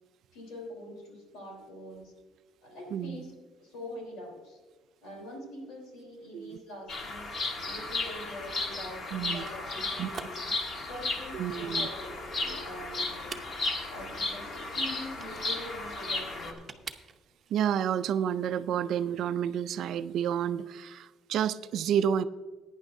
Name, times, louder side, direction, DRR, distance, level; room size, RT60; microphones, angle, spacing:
voice 1, 0.3-2.1 2.6-3.3 3.6-4.6 5.0-7.3 7.6-10.4 10.8-13.3 13.9-16.7, left 1 dB, 80° left, 1 dB, 3.5 m, -44 dB
voice 2, 2.9-3.3 6.3-6.6 9.1-9.4 10.0-10.1 11.3-11.9 17.5-22.2, right 9 dB, 55° right, 12 dB, 0.3 m, -30 dB
Bird vocalization bird call bird song, 6.9-16.5, left 2 dB, 40° left, 1.4 m, -34 dB
sound 1, 7.3-17.5, right 5 dB, 25° right, 0.7 m, -49 dB
17.0 x 9.8 x 2.6 m, 1.4 s
cardioid pair, 165°, 0 cm